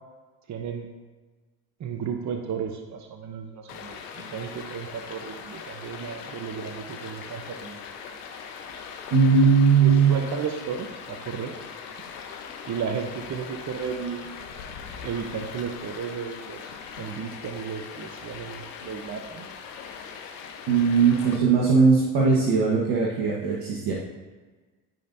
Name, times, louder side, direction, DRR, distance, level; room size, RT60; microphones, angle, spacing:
voice 1, 0.5-0.9 1.8-7.8 9.3-11.5 12.7-14.3 15.0-19.5 21.2-21.7, right 6 dB, 40° right, 4 dB, 1.0 m, -34 dB
Stream, 3.7-21.4, left 6 dB, 85° left, 1.1 m, -40 dB
voice 2, 9.1-10.1 20.7-23.9, right 5 dB, 60° right, -4 dB, 1.6 m, -19 dB
14.0 x 5.4 x 2.8 m, 1.3 s
hypercardioid pair, 70°, 45 cm